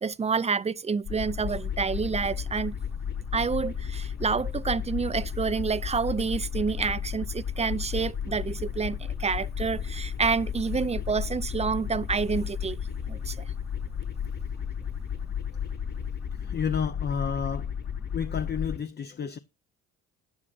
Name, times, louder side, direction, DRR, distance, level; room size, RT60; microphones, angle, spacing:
voice 1, 0.0-2.7 3.3-12.8 13.1-13.4, right 5 dB, 20° right, 0.5 m, -28 dB
sound 1, 1.1-18.8, left 8 dB, 80° left, 7.6 m, -33 dB
voice 2, 16.3-17.7 18.1-19.4, left 7 dB, 35° left, 0.6 m, -31 dB
15.0 x 9.7 x 2.5 m
cardioid pair, 90°, 30 cm